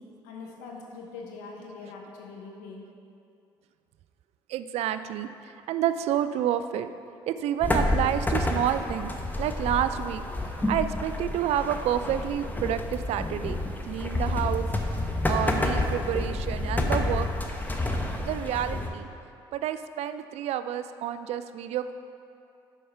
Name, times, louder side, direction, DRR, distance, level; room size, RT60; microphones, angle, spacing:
voice 1, 0.0-2.9, left 4 dB, 80° left, 0 dB, 1.0 m, -43 dB
voice 2, 4.5-6.9 7.3-9.1 9.4-10.2 10.7-13.6 13.9-14.7 15.2-17.3 18.2-19.1 19.5-21.9, right 10 dB, 65° right, 11 dB, 0.4 m, -29 dB
sound 1, 7.6-18.9, left 2 dB, 15° left, 0.9 m, -29 dB
7.2 x 5.6 x 4.5 m, 2.5 s
hypercardioid pair, 55°, 12 cm